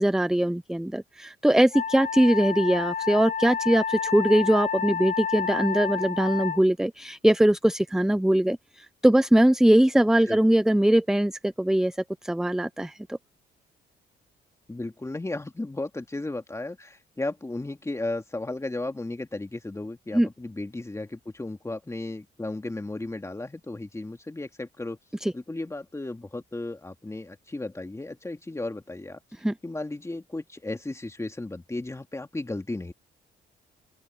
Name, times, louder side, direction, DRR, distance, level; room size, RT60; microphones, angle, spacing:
voice 1, 0.0-12.0 12.2-13.2 20.1-20.3 25.2-25.3 29.4-29.5, right 1 dB, 5° right, 0.5 m, -21 dB
Wind instrument woodwind instrument, 1.7-6.6, left 7 dB, 55° left, 1.9 m, -30 dB
voice 2, 14.7-25.0 25.3-29.2 29.6-32.9, left 2 dB, 15° left, 2.5 m, -34 dB
open air
cardioid pair, 90°, 20 cm